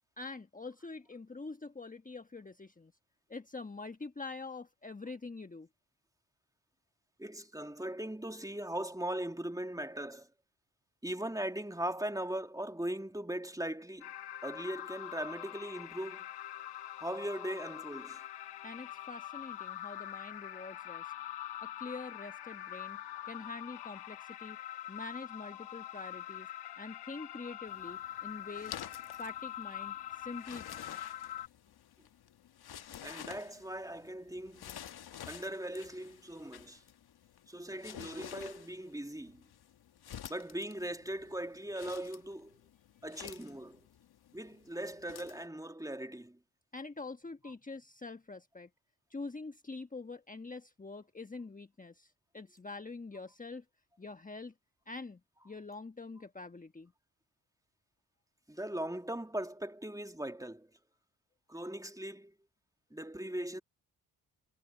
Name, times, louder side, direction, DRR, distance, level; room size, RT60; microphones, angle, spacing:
voice 1, 0.2-2.9 3.3-5.7 18.6-21.1 21.6-23.0 23.3-24.6 24.9-26.5 26.8-28.8 29.2-31.0 46.7-48.7 49.1-53.6 54.0-54.5 54.9-55.2 55.4-56.9, left 3 dB, 20° left, 1.3 m, -45 dB
voice 2, 7.2-10.3 11.0-14.1 14.4-16.2 17.0-18.2 33.0-34.7 35.3-36.8 37.5-39.4 40.3-42.5 43.0-43.8 44.3-46.4 47.4-47.5 58.5-60.7 61.5-62.3 62.9-63.6, right 1 dB, 10° right, 2.6 m, -39 dB
sound 1, 14.0-31.5, left 12 dB, 80° left, 3.9 m, -44 dB
sound 2, 27.7-45.5, left 10 dB, 65° left, 1.5 m, -51 dB
supercardioid pair, 45°, 41 cm